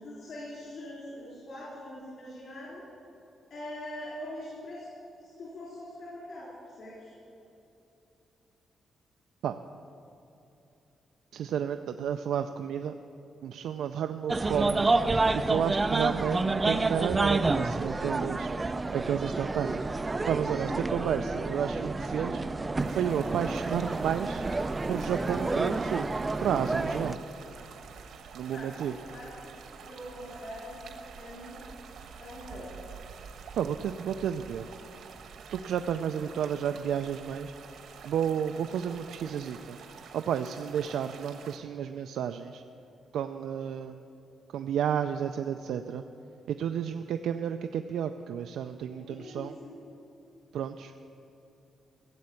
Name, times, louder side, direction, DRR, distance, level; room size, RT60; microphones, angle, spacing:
voice 1, 0.0-2.8 3.5-4.9 5.2-6.5 6.8-7.1 20.7-21.0 28.5-29.3 29.8-30.9 31.2-31.6 32.2-32.8 48.9-49.8, left 1 dB, 50° left, -7 dB, 3.5 m, -43 dB
voice 2, 11.3-12.9 13.4-14.8 15.3-18.5 18.9-19.9 20.3-22.4 22.9-24.5 24.9-26.1 26.4-27.2 28.3-29.0 33.6-34.7 35.5-37.5 38.0-39.8 40.1-42.6 43.1-44.0 44.5-46.0 46.5-49.6 50.5-50.9, right 8 dB, 85° right, 7 dB, 0.4 m, -31 dB
sound 1, 14.3-27.1, right 3 dB, 15° right, 0.3 m, -29 dB
sound 2, 22.8-41.6, right 6 dB, 70° right, 1.1 m, -48 dB
16.0 x 7.7 x 8.3 m, 2.8 s
wide cardioid pair, 180°, 0 cm